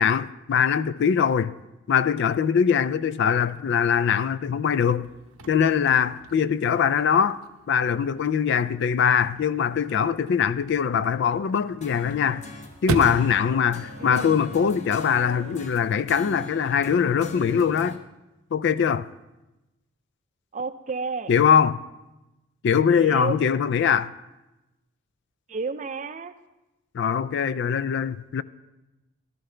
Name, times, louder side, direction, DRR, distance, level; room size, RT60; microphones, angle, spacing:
voice 1, 0.0-1.5 1.9-5.1 5.5-7.4 7.7-12.4 12.8-18.0 18.5-19.1 21.3-21.8 22.6-24.1 26.9-28.4, left 7 dB, 55° left, 0.3 m, -22 dB
Chirp tweet / Car / Slam, 5.0-15.0, right 2 dB, 90° right, 0.8 m, -38 dB
sound 1, 11.8-18.0, left 2 dB, 35° left, 0.9 m, -41 dB
voice 2, 14.0-14.4 20.5-21.3 22.9-23.4 25.5-26.3, right 4 dB, 35° right, 0.4 m, -31 dB
14.5 x 12.0 x 3.3 m
head